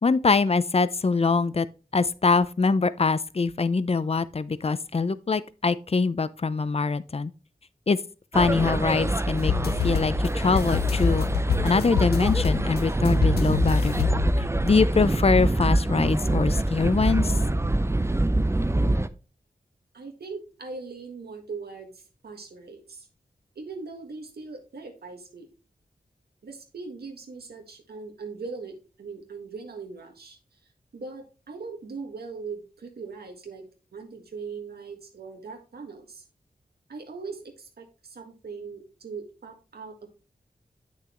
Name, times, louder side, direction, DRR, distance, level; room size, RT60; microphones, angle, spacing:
voice 1, 0.0-1.7 1.9-7.3 7.9-8.0 8.3-11.3 11.6-14.1 14.6-17.3, left 4 dB, 40° left, 0.6 m, -23 dB
sound 1, 8.3-19.1, right 1 dB, 15° right, 0.6 m, -25 dB
sound 2, 9.4-14.7, left 6 dB, 85° left, 0.4 m, -27 dB
voice 2, 19.9-23.1 23.5-25.5 26.4-30.4 30.9-33.6 33.9-36.2 36.9-40.1, right 4 dB, 85° right, 1.6 m, -40 dB
8.3 x 6.2 x 3.0 m
cardioid pair, 45°, 16 cm